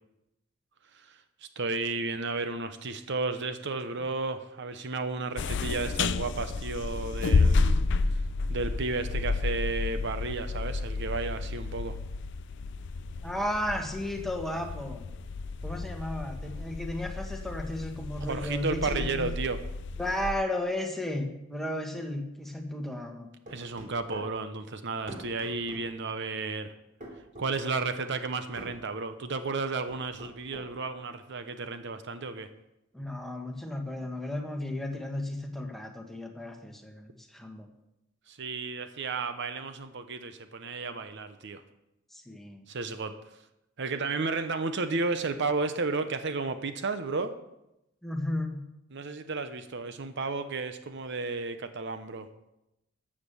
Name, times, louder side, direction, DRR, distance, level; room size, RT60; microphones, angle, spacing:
voice 1, 0.9-7.7 8.1-12.0 18.3-19.6 23.5-26.7 27.4-32.5 38.3-41.6 42.7-43.1 43.8-47.3 48.9-52.3, right 3 dB, 60° right, 10 dB, 0.8 m, -33 dB
sound 1, 5.4-20.3, left 3 dB, 60° left, 0.5 m, -31 dB
voice 2, 13.2-15.0 15.6-19.3 20.0-23.3 32.9-37.7 42.1-42.6 48.0-48.6, left 1 dB, ahead, 3 dB, 1.5 m, -34 dB
sound 2, 23.5-24.3 25.1-25.8 27.0-27.5 28.6-28.7 29.9-30.7, equal, 40° right, 4.0 m, -43 dB
13.5 x 7.5 x 6.9 m, 0.89 s
head